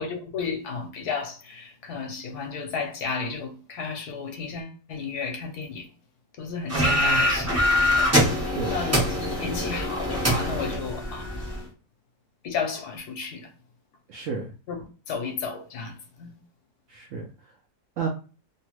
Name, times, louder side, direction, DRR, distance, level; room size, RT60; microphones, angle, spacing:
voice 1, 0.0-5.9 6.4-7.7 7.9-8.1 8.7-11.3 12.4-13.5 14.7-14.8 15.1-16.3, left 5 dB, 70° left, 1.2 m, -33 dB
sound 1, 6.7-11.6, left 1 dB, 20° right, 0.5 m, -24 dB
voice 2, 6.7-7.3 8.5-8.8 14.1-14.5 16.9-17.3 18.0-18.1, right 5 dB, 70° right, 0.7 m, -31 dB
3.0 x 2.1 x 2.9 m
omnidirectional pair, 1.8 m